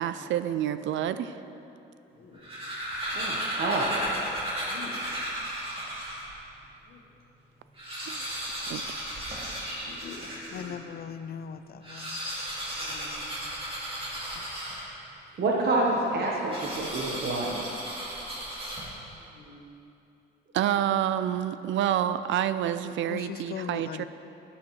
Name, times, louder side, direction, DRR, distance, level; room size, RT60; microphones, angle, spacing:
voice 1, 0.0-1.4 8.1-8.8 20.5-24.0, right 10 dB, 70° right, 12 dB, 0.4 m, -28 dB
sound 1, 2.2-6.4 6.9-7.0 7.2-7.3 7.7-10.8 11.7-15.2 16.5-19.2, right 1 dB, 30° right, 2.4 m, -35 dB
voice 2, 3.1-4.0 15.4-17.6, right 2 dB, 55° right, -2 dB, 1.1 m, -27 dB
voice 3, 4.6-5.0 6.9-7.0 9.5-10.8 12.7-13.1 19.2-19.6, left 4 dB, 85° left, -1 dB, 1.4 m, -47 dB
voice 4, 10.5-12.2 14.4-14.5 23.1-24.0, left 8 dB, 50° left, 12 dB, 0.4 m, -39 dB
11.5 x 9.7 x 3.2 m, 2.8 s
cardioid pair, 90°, 20 cm